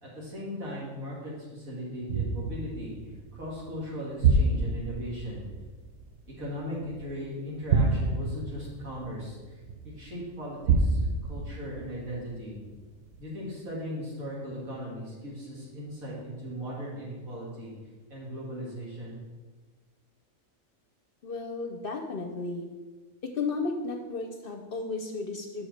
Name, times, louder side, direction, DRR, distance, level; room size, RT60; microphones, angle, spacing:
voice 1, 0.0-2.9 3.3-5.4 6.3-9.6 9.8-12.6 13.2-17.7 18.1-19.2, equal, 90° right, -5 dB, 2.7 m, -38 dB
sound 1, 2.1-7.1 7.6-10.0 10.6-12.7 13.1-13.2, right 3 dB, 65° right, 1.0 m, -28 dB
voice 2, 21.2-22.7 23.2-25.7, left 3 dB, 55° left, 4 dB, 0.7 m, -34 dB
5.8 x 4.9 x 6.4 m, 1.3 s
omnidirectional pair, 1.4 m